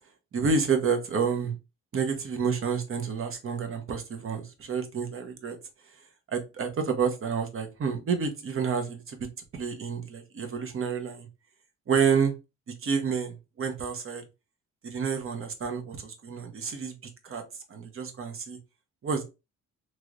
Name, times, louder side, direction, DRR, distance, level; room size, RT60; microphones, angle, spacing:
voice 1, 0.3-1.6 1.9-5.6 6.3-9.2 9.5-11.3 11.9-12.3 12.8-14.2 14.8-16.9 17.2-17.4 17.7-18.6 19.0-19.2, right 6 dB, 45° right, 5 dB, 1.0 m, -29 dB
3.1 x 3.0 x 2.5 m, 0.27 s
cardioid pair, 90°, 30 cm